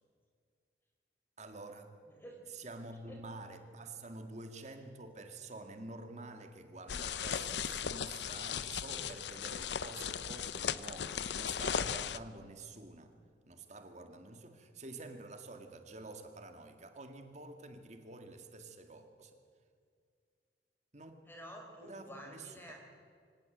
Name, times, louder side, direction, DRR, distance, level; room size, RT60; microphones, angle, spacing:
voice 1, 1.4-2.0 2.5-13.2 13.5-19.4 20.9-21.1 21.8-22.7, right 2 dB, 40° right, 2.0 m, -49 dB
voice 2, 2.1-2.4 3.1-3.2 21.2-22.7, equal, 10° left, 4.5 m, -50 dB
sound 1, 6.9-12.2, left 7 dB, 75° left, 0.6 m, -37 dB
24.0 x 18.0 x 8.0 m
head